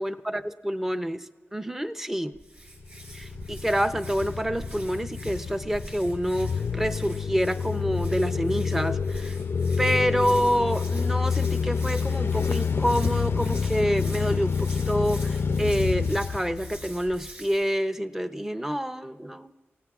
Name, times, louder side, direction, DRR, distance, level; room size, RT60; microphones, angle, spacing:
voice 1, 0.0-2.4 3.1-9.4 9.8-19.5, equal, 10° right, 11 dB, 0.6 m, -27 dB
Hands, 2.3-17.8, right 1 dB, 40° right, 3.8 m, -45 dB
sound 1, 2.8-17.2, left 5 dB, 55° left, 0.4 m, -28 dB
28.5 x 16.5 x 2.4 m, 1.3 s
wide cardioid pair, 100°, 5 cm